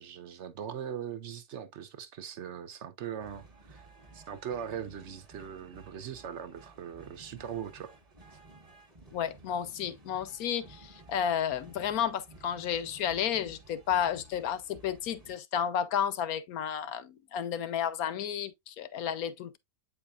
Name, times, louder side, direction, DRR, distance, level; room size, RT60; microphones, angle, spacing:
voice 1, 0.0-3.9 4.1-7.9, right 8 dB, 50° right, 1.0 m, -40 dB
sound 1, 3.2-15.4, right 2 dB, 25° right, 1.2 m, -54 dB
voice 2, 9.1-19.6, left 9 dB, 65° left, 1.1 m, -32 dB
8.5 x 4.8 x 2.4 m
omnidirectional pair, 1.8 m